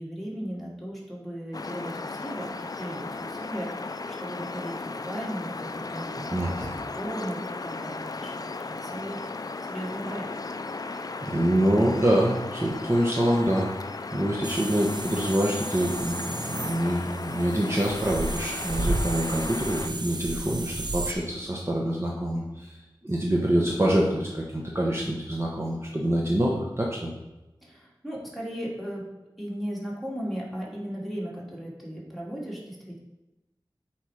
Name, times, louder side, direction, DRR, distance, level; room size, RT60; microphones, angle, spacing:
voice 1, 0.0-9.3 9.6-10.3 27.6-29.1 29.4-33.0, equal, ahead, -5 dB, 2.4 m, -36 dB
sound 1, 1.5-19.9, left 3 dB, 50° left, 0.4 m, -36 dB
voice 2, 6.3-6.7 11.2-22.7 23.0-27.1, right 1 dB, 30° right, -2 dB, 1.1 m, -26 dB
sound 2, 14.4-21.1, right 2 dB, 60° right, 0.7 m, -33 dB
7.9 x 4.5 x 5.0 m, 1.0 s
wide cardioid pair, 60°, 8 cm